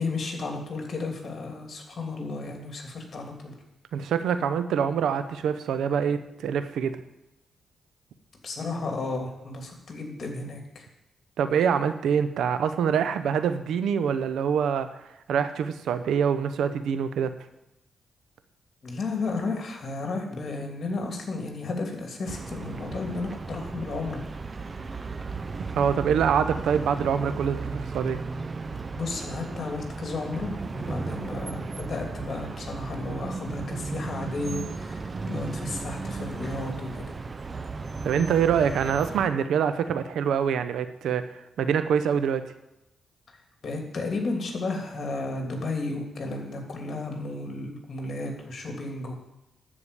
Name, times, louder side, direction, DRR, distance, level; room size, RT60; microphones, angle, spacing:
voice 1, 0.0-3.5 8.4-10.8 18.8-24.2 28.9-37.1 43.6-49.1, left 3 dB, 55° left, 2 dB, 3.0 m, -33 dB
voice 2, 3.9-7.0 11.4-14.9 15.3-17.3 25.7-28.2 38.0-41.2 41.6-42.5, right 7 dB, 85° right, 10 dB, 0.8 m, -25 dB
sound 1, 22.3-39.3, right 4 dB, 40° right, 0.7 m, -35 dB
12.5 x 5.0 x 8.4 m, 0.90 s
cardioid pair, 70°, 0 cm